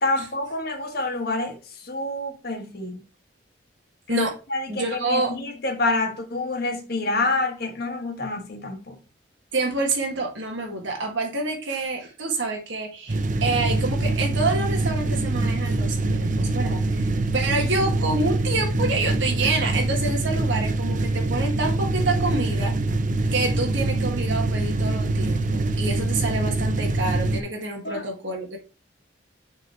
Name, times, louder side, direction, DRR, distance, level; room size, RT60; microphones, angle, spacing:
voice 1, 0.0-3.0 4.1-9.0 27.8-28.0, left 2 dB, 50° left, 1.4 m, -27 dB
voice 2, 4.7-5.3 9.5-22.7 23.3-28.6, right 3 dB, 75° right, 1.6 m, -27 dB
sound 1, 13.1-27.4, right 2 dB, 40° right, 0.6 m, -24 dB
6.5 x 3.9 x 4.3 m
head